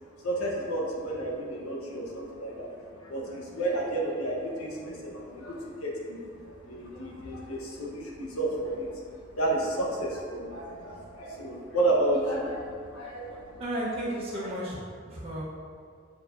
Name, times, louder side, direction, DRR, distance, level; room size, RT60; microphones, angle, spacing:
voice 1, 0.2-13.6 14.1-14.2 14.4-14.5, right 1 dB, 90° left, -2 dB, 1.1 m, -32 dB
voice 2, 13.6-14.8 15.0-15.4, right 1 dB, 25° right, -8 dB, 1.0 m, -33 dB
7.8 x 4.8 x 2.7 m, 2.2 s
head